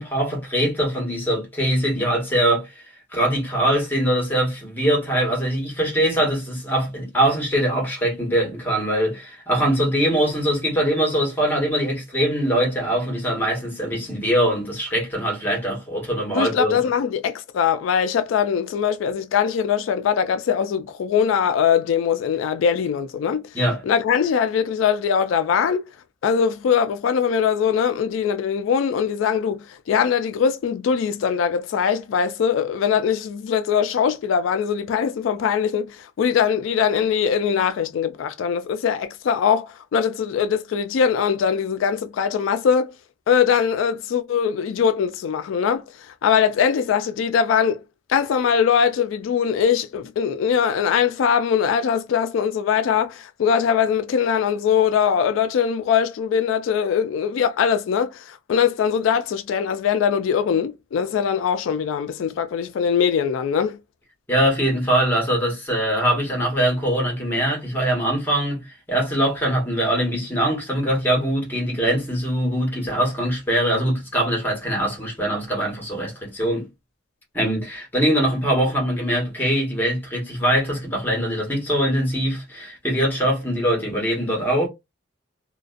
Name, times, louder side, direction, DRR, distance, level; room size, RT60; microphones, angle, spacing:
voice 1, 0.0-2.8 3.1-16.8 23.5-23.8 64.3-68.6 68.9-76.7 77.3-84.7, right 1 dB, 10° left, 1.1 m, -22 dB
voice 2, 16.3-23.4 23.8-25.8 26.2-42.9 43.3-45.8 46.2-47.8 48.1-63.8, left 7 dB, 85° left, 0.3 m, -21 dB
2.4 x 2.2 x 2.4 m
head